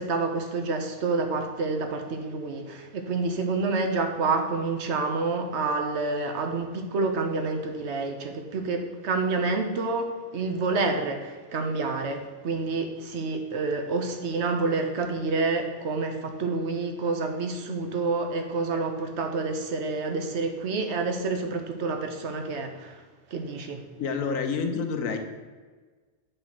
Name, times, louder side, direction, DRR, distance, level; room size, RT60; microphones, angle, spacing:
voice 1, 0.0-23.0 23.3-23.8, right 3 dB, 55° right, 5 dB, 1.0 m, -28 dB
voice 2, 24.0-25.2, left 5 dB, 65° left, 6 dB, 1.1 m, -28 dB
8.0 x 3.7 x 5.8 m, 1.4 s
omnidirectional pair, 1.6 m